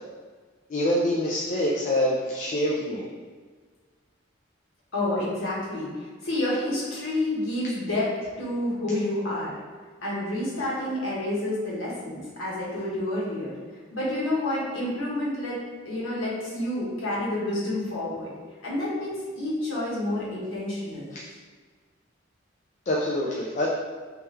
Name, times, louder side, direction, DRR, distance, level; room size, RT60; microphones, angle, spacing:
voice 1, 0.7-3.1 21.1-21.2 22.9-23.7, left 1 dB, 40° left, -4 dB, 0.4 m, -25 dB
voice 2, 4.9-8.1 8.4-9.5 10.0-13.5 13.9-15.6 15.8-18.3 18.6-21.1, left 1 dB, 85° left, -7 dB, 1.3 m, -29 dB
3.3 x 3.2 x 3.2 m, 1.5 s
head